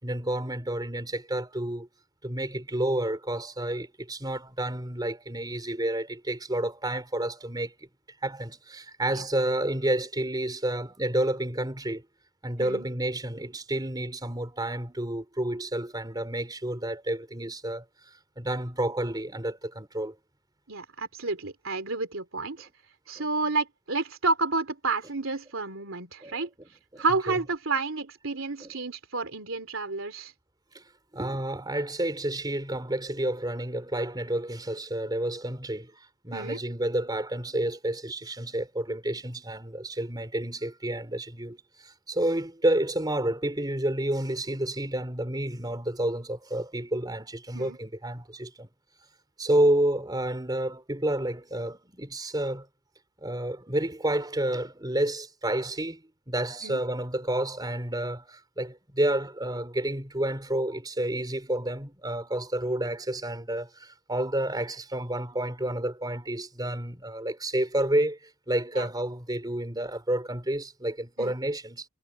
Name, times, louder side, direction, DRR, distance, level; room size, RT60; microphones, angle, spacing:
voice 1, 0.0-1.9 2.2-7.7 8.2-12.1 12.4-17.8 18.4-20.1 23.2-23.3 26.2-26.5 26.9-27.0 28.6-28.7 30.7-30.8 31.1-35.9 36.2-48.7 49.4-52.7 53.2-71.9, right 1 dB, 20° right, 4.5 m, -30 dB
voice 2, 20.7-22.7 23.1-26.5 27.0-30.3 36.3-36.6 47.5-47.8 56.6-56.8 68.8-68.9 71.2-71.4, right 3 dB, 65° right, 3.2 m, -30 dB
head